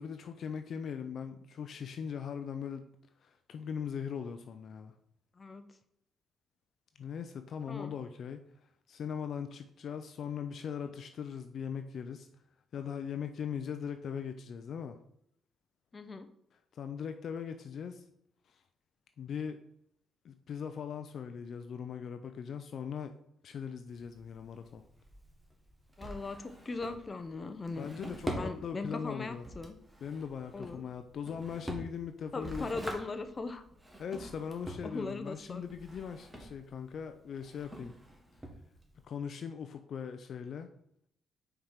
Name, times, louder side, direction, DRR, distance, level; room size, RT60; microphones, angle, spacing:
voice 1, 0.0-2.9 3.2-4.9 7.0-8.4 8.9-12.3 12.7-15.0 16.7-18.0 18.5-18.6 19.2-19.6 20.2-23.1 23.4-24.8 27.8-29.4 30.0-32.8 34.0-38.0 39.0-40.7, left 7 dB, 60° left, 8 dB, 0.5 m, -40 dB
voice 2, 15.9-16.3 26.0-27.9 28.3-29.8 30.5-30.8 32.3-33.6 34.8-35.6, left 3 dB, 30° left, 8 dB, 0.8 m, -39 dB
Drawer open or close, 23.9-39.1, right 1 dB, 10° right, 1.6 m, -45 dB
5.0 x 4.6 x 5.7 m, 0.73 s
cardioid pair, 90°, 0 cm